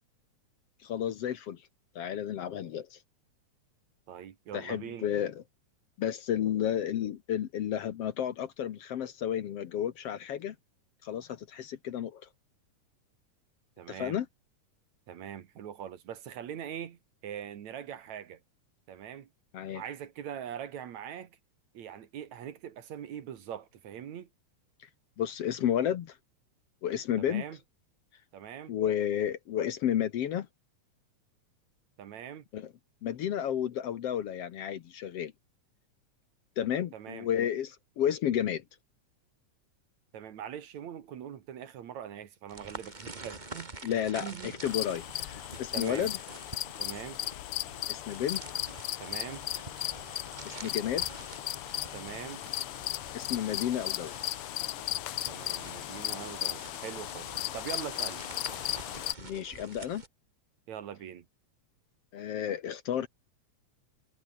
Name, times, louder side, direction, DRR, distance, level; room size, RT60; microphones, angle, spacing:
voice 1, 0.8-1.6 2.0-3.0 4.5-5.4 6.0-10.6 11.0-12.2 13.9-14.3 19.5-19.8 25.2-26.2 26.8-27.4 28.7-30.5 32.5-32.7 33.0-35.3 36.6-38.6 43.8-46.2 47.9-48.4 50.4-51.0 53.1-54.1 59.2-60.0 62.1-63.1, left 10 dB, 60° left, 1.9 m, -32 dB
voice 2, 4.1-5.1 13.8-14.2 15.1-18.4 18.9-19.3 19.7-21.3 21.7-24.3 27.2-27.6 28.3-28.7 32.0-32.4 36.9-37.3 40.1-43.9 44.2-44.6 45.7-46.1 46.8-47.2 49.0-49.4 51.9-52.4 55.3-58.2 60.7-61.3, right 9 dB, 70° right, 3.0 m, -42 dB
sound 1, 42.5-60.1, right 2 dB, 15° right, 2.4 m, -48 dB
sound 2, 44.7-59.1, left 15 dB, 80° left, 1.2 m, -36 dB
omnidirectional pair, 3.4 m